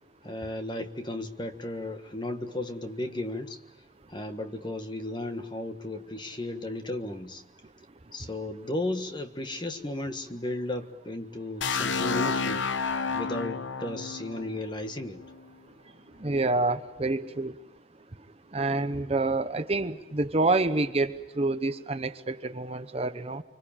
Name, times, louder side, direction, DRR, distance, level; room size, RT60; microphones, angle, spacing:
voice 1, 0.2-3.6 4.1-7.4 8.1-12.6 13.1-15.2, left 1 dB, 25° left, 7 dB, 1.5 m, -34 dB
sound 1, 11.6-15.4, left 4 dB, 75° left, 1.0 m, -30 dB
voice 2, 16.2-17.5 18.5-23.4, right 2 dB, 30° right, 10 dB, 0.9 m, -27 dB
25.5 x 25.0 x 8.9 m, 0.99 s
head